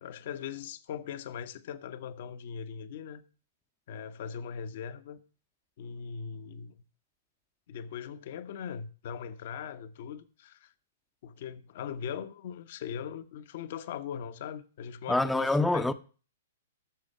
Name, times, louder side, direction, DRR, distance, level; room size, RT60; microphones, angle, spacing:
voice 1, 0.0-3.2 3.9-5.2 5.8-6.8 7.7-10.7 11.2-15.8, left 7 dB, 55° left, 1.0 m, -40 dB
voice 2, 15.1-15.9, left 2 dB, 5° left, 0.7 m, -25 dB
12.5 x 7.1 x 5.5 m
hypercardioid pair, 115°, 0 cm